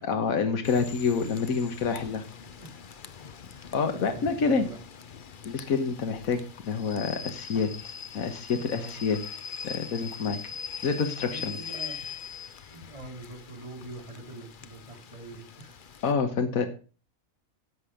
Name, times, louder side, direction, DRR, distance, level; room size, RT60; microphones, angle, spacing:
voice 1, 0.0-2.2 3.7-4.7 5.5-9.2 9.6-10.4 10.8-11.6 16.0-16.7, left 5 dB, 75° left, 6 dB, 1.7 m, -27 dB
Rain / Train, 0.6-16.1, left 6 dB, 45° left, 0.8 m, -42 dB
voice 2, 3.5-4.8 8.5-9.1 11.3-12.0 12.7-15.8, right 2 dB, 25° right, -1 dB, 3.7 m, -44 dB
11.5 x 7.5 x 5.0 m, 0.36 s
omnidirectional pair, 1.5 m